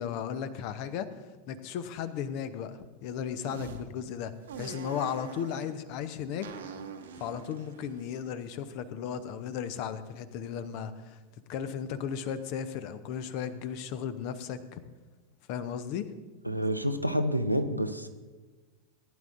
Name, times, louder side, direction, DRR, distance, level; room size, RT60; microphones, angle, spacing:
voice 1, 0.0-4.3 4.6-6.5 7.2-11.2 11.5-14.8 15.5-16.1, left 8 dB, 45° left, 12 dB, 0.8 m, -35 dB
sound 1, 3.4-3.8 4.5-5.7 6.4-8.8, right 5 dB, 65° right, 1.0 m, -44 dB
voice 2, 16.5-18.1, equal, 90° right, 8 dB, 0.7 m, -28 dB
18.5 x 10.5 x 2.6 m, 1.3 s
figure-of-eight pair, 90°, 0 cm